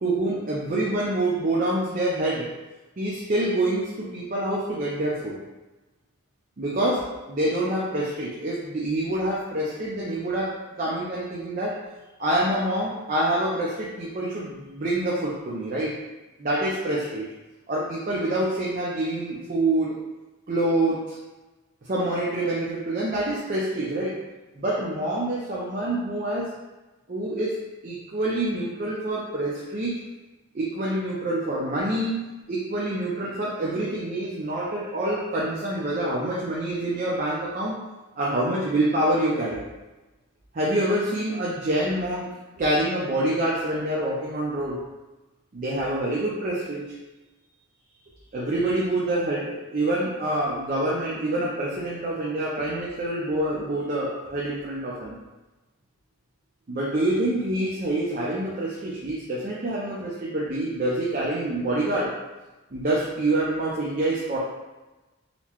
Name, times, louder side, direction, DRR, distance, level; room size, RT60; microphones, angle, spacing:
voice 1, 0.0-2.5 3.0-5.4 6.6-11.8 12.2-16.0 16.4-17.3 17.7-20.0 20.5-21.2 21.8-24.2 24.5-26.5 27.1-27.6 27.8-29.9 30.5-32.2 32.5-37.8 38.2-39.6 40.5-44.8 45.5-46.8 48.3-55.2 56.7-62.1 62.7-64.4, right 1 dB, 40° right, -5 dB, 0.5 m, -26 dB
4.0 x 2.1 x 2.9 m, 1.1 s
head